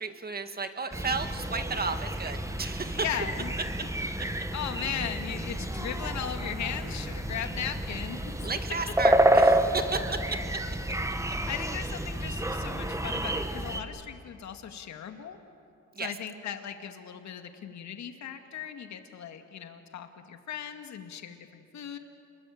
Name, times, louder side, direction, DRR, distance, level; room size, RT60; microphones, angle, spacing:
voice 1, 0.0-3.0 4.2-4.3 8.4-10.4 15.9-16.2, right 4 dB, 30° right, 8 dB, 1.9 m, -33 dB
sound 1, 0.9-13.8, right 1 dB, 10° right, 1.6 m, -29 dB
voice 2, 2.9-3.5 3.8-3.9 4.5-8.5 11.5-15.4 16.0-22.0, left 8 dB, 65° left, 6 dB, 2.1 m, -37 dB
28.0 x 22.0 x 8.6 m, 2.6 s
cardioid pair, 90°, 30 cm